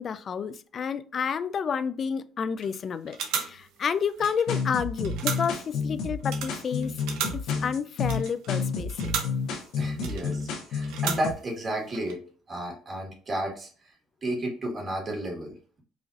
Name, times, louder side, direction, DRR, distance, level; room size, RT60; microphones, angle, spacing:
voice 1, 0.0-7.0 7.3-9.1, left 6 dB, 40° left, 14 dB, 0.3 m, -30 dB
sound 1, 2.6-2.8 3.1-4.7 5.0-5.8 6.2-9.5 10.0-10.5 10.8-11.6 11.9-12.1, right 7 dB, 85° right, 0.7 m, -36 dB
sound 2, 4.2-11.3, left 5 dB, 75° left, 1.1 m, -30 dB
voice 2, 9.7-12.2 12.5-13.9 14.2-15.8, right 1 dB, 30° right, 1 dB, 1.5 m, -32 dB
4.9 x 2.6 x 2.5 m, 0.42 s
cardioid pair, 120°, 0 cm